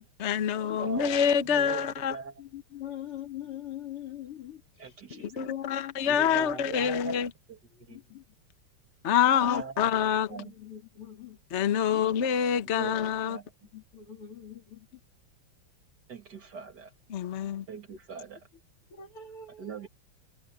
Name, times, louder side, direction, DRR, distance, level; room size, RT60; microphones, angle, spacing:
voice 1, 0.2-2.2 5.4-7.3 9.0-10.3 11.5-13.4 17.1-17.6, left 8 dB, 45° left, 1.0 m, -26 dB
voice 2, 0.8-2.4 4.8-5.5 6.1-7.1 7.5-8.0 9.5-9.8 10.3-10.5 12.6-13.7 16.1-16.9 17.7-18.5 19.6-19.9, right 6 dB, 50° right, 2.8 m, -42 dB
voice 3, 2.4-6.5 7.9-8.2 9.2-9.7 10.3-11.4 11.9-12.1 13.7-15.0 18.9-19.9, left 10 dB, 90° left, 3.9 m, -42 dB
omnidirectional pair, 2.4 m